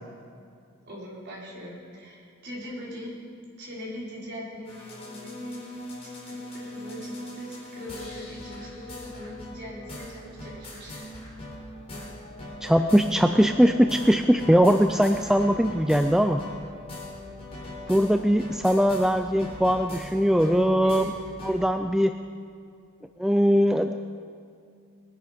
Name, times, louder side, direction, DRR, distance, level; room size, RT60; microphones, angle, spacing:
voice 1, 0.9-3.1 3.6-5.7 6.3-11.1 20.8-21.2, equal, 50° right, -5 dB, 4.4 m, -41 dB
sound 1, 4.6-21.5, left 1 dB, 25° left, 4.2 m, -40 dB
voice 2, 12.6-16.4 17.9-21.1 21.4-22.1 23.2-23.9, equal, ahead, 7 dB, 0.3 m, -21 dB
20.5 x 11.0 x 5.1 m, 2.4 s
head